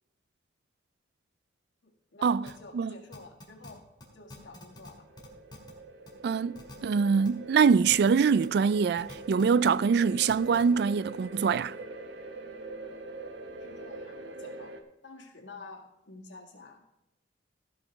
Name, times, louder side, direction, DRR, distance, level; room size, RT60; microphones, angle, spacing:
voice 1, 1.8-3.8 4.1-5.0 5.4-5.5 13.6-14.7 15.0-16.8, left 3 dB, 75° left, 1.9 m, -49 dB
sound 1, 2.5-2.6 3.1-3.7 4.0-4.1 4.3-4.9 5.2-5.7 6.1-6.2 6.5-6.7 7.2-7.3 7.9-8.1 8.4-8.5 9.0-9.7 10.3-10.6, left 1 dB, 25° left, 2.1 m, -46 dB
sound 2, 4.1-14.8, right 2 dB, 80° right, 1.1 m, -44 dB
voice 2, 6.2-11.7, right 6 dB, 60° right, 0.3 m, -24 dB
16.0 x 5.7 x 4.7 m
head